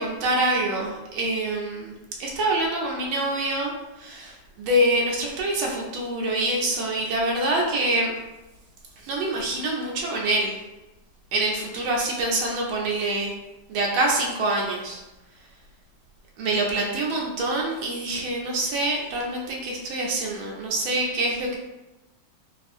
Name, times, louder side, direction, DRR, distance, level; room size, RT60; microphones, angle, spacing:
voice 1, 0.0-1.9 2.2-3.7 4.0-8.1 9.0-10.5 11.3-13.3 13.7-15.0 16.4-21.6, right 1 dB, 90° right, -2 dB, 1.4 m, -25 dB
4.2 x 2.3 x 2.6 m, 1.0 s
omnidirectional pair, 2.1 m